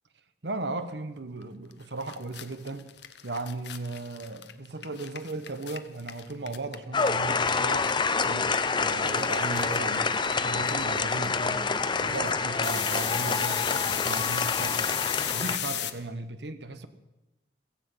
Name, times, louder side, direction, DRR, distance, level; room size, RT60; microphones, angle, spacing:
voice 1, 0.4-2.9 3.2-7.9 8.2-8.5 8.8-11.7 12.0-14.9 15.3-16.9, right 3 dB, 70° right, 1.1 m, -36 dB
sound 1, 1.7-1.8 2.0-7.5 7.8-15.9, left 11 dB, 70° left, 0.9 m, -34 dB
sound 2, 6.9-15.6, left 4 dB, 25° left, 0.7 m, -27 dB
16.5 x 15.0 x 5.6 m
head